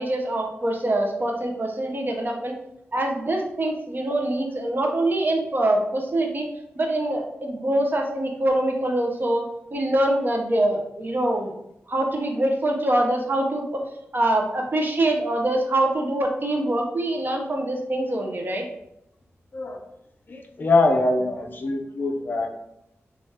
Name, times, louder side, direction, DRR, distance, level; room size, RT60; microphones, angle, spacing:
voice 1, 0.0-2.5 2.9-6.5 6.7-9.4 9.7-11.5 11.9-13.9 14.1-18.7, right 1 dB, 40° right, 2 dB, 0.6 m, -24 dB
voice 2, 20.3-22.5, left 2 dB, 40° left, 2 dB, 0.4 m, -23 dB
3.3 x 2.3 x 2.7 m, 0.80 s
wide cardioid pair, 70°, 5 cm